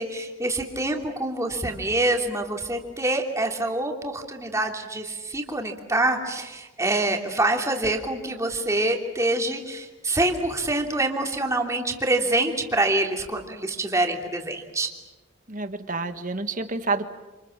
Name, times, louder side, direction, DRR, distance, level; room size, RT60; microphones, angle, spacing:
voice 1, 0.0-14.9, right 2 dB, 15° right, 2 dB, 2.9 m, -26 dB
voice 2, 15.5-17.0, right 3 dB, 40° right, 9 dB, 1.6 m, -28 dB
28.0 x 27.5 x 7.4 m, 1.2 s
head